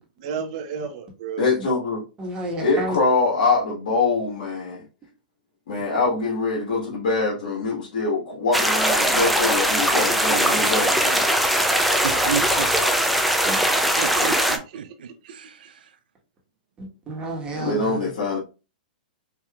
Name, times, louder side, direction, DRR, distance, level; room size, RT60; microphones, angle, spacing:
voice 1, 0.2-1.5 13.9-14.0 14.3-14.4 14.8-15.3, right 6 dB, 50° right, 0.9 m, -33 dB
voice 2, 1.4-2.0 2.6-4.8 5.7-11.2 17.5-18.4, left 3 dB, 70° left, 1.5 m, -24 dB
voice 3, 2.2-3.0 10.3-10.4 13.4-13.6 16.8-18.1, right 1 dB, 20° right, 1.4 m, -31 dB
sound 1, 8.5-14.6, equal, ahead, 0.5 m, -20 dB
voice 4, 12.0-12.7 14.0-15.8, right 7 dB, 85° right, 0.5 m, -31 dB
4.7 x 2.7 x 2.4 m
hypercardioid pair, 140°, 5 cm